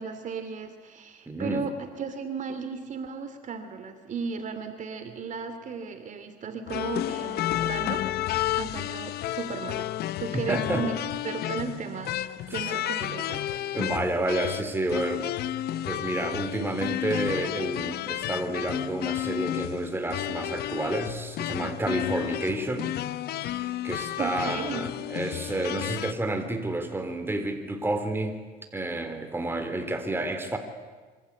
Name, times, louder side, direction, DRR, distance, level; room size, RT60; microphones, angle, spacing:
voice 1, 0.0-9.9 10.2-11.0 11.2-12.2 12.5-13.5 24.2-24.8, right 5 dB, 45° right, 8 dB, 2.7 m, -35 dB
voice 2, 1.3-1.7 10.3-10.8 13.7-15.3 15.9-23.0 23.3-28.4 28.7-30.6, right 2 dB, 15° right, 6 dB, 3.5 m, -30 dB
sound 1, 6.7-26.1, left 13 dB, 70° left, 0.8 m, -32 dB
26.0 x 25.0 x 8.5 m, 1.4 s
cardioid pair, 110°, 17 cm